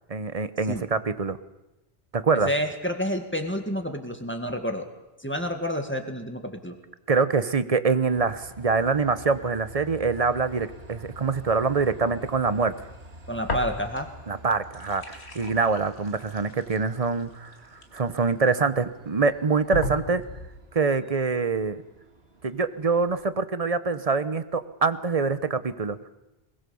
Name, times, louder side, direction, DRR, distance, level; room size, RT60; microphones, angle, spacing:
voice 1, 0.1-1.4 2.1-2.5 7.1-12.7 14.3-17.5 17.9-20.2 20.7-21.8 22.4-26.0, right 4 dB, 35° right, 13 dB, 1.0 m, -25 dB
voice 2, 2.4-4.9 5.2-6.8 13.3-14.1, equal, 10° left, 5 dB, 1.9 m, -29 dB
Train, 8.1-23.2, right 1 dB, 70° right, 2.2 m, -49 dB
sound 1, 13.4-14.2 14.5-18.5 19.1-19.2 19.7-20.6, left 2 dB, 85° left, 2.4 m, -35 dB
21.5 x 21.0 x 7.1 m, 1.0 s
omnidirectional pair, 1.1 m